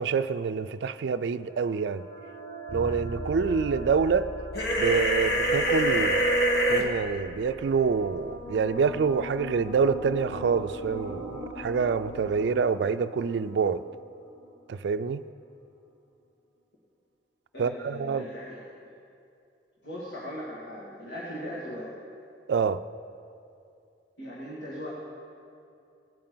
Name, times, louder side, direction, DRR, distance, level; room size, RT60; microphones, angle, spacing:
voice 1, 0.0-2.0 2.7-4.3 4.8-6.2 6.7-13.8 14.7-15.2 17.6-18.3 22.5-22.8, right 5 dB, 70° right, 0.3 m, -26 dB
sound 1, 0.9-15.0, equal, 40° left, 2.1 m, -43 dB
Bass guitar, 2.7-12.5, equal, 20° right, 2.7 m, -44 dB
sound 2, 4.5-6.8, right 1 dB, 60° left, 1.5 m, -24 dB
voice 2, 17.5-18.6 19.8-21.9 24.2-24.9, equal, 75° left, 2.3 m, -38 dB
18.5 x 8.6 x 3.9 m
head